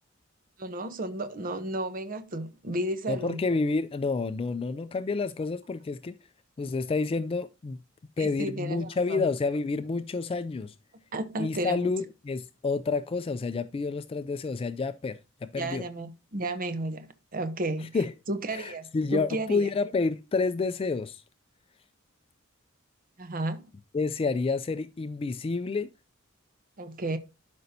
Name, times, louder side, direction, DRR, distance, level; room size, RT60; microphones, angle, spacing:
voice 1, 0.6-3.4 8.2-9.2 11.1-11.9 15.6-18.0 18.3-19.7 23.2-23.6 26.8-27.2, right 1 dB, 45° right, 0.8 m, -33 dB
voice 2, 3.1-6.1 6.6-7.8 8.2-10.8 11.4-15.8 17.9-18.1 18.5-21.2 23.9-25.9, left 4 dB, 25° left, 0.3 m, -29 dB
12.0 x 5.2 x 2.7 m
head